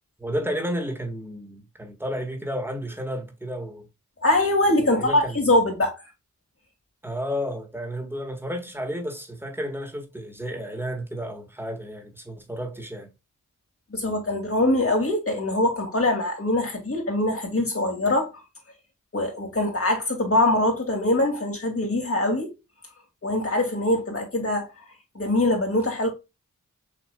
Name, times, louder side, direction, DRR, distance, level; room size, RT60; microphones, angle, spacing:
voice 1, 0.2-3.9 4.9-5.4 7.0-13.1, equal, 5° right, 1.7 m, -32 dB
voice 2, 4.2-6.0 13.9-18.3 19.1-22.5 23.2-24.7 25.1-26.1, left 1 dB, 45° left, 2.3 m, -23 dB
6.4 x 3.0 x 2.3 m
cardioid pair, 50°, 32 cm